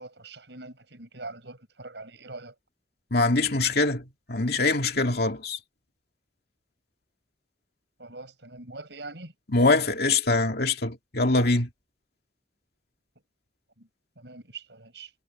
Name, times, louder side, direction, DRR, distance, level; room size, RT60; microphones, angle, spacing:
voice 1, 0.0-2.5 8.0-9.3 13.8-13.9 14.2-15.1, right 3 dB, 75° right, 7.3 m, -43 dB
voice 2, 3.1-4.0 4.3-5.6 9.5-11.7, left 3 dB, 60° left, 2.4 m, -23 dB
head